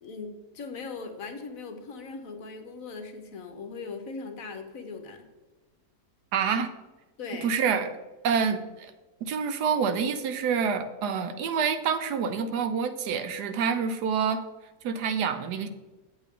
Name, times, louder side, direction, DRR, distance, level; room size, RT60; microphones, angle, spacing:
voice 1, 0.0-5.2 7.2-7.5, left 4 dB, 60° left, 6 dB, 1.2 m, -39 dB
voice 2, 6.3-6.7 7.4-7.9 8.2-8.6 9.2-14.4 14.8-15.7, right 6 dB, 80° right, 10 dB, 1.3 m, -27 dB
8.3 x 7.9 x 3.6 m, 1.2 s
omnidirectional pair, 1.7 m